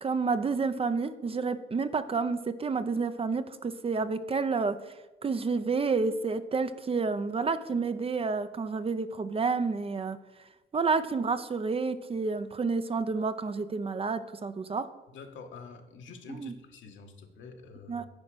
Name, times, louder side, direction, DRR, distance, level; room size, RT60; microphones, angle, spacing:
voice 1, 0.0-4.9 5.2-10.2 10.7-14.9 16.3-16.5 17.9-18.1, right 4 dB, 30° right, 12 dB, 0.5 m, -30 dB
voice 2, 15.1-18.1, left 4 dB, 75° left, 4 dB, 1.3 m, -47 dB
9.6 x 4.8 x 6.2 m, 1.1 s
cardioid pair, 90°, 20 cm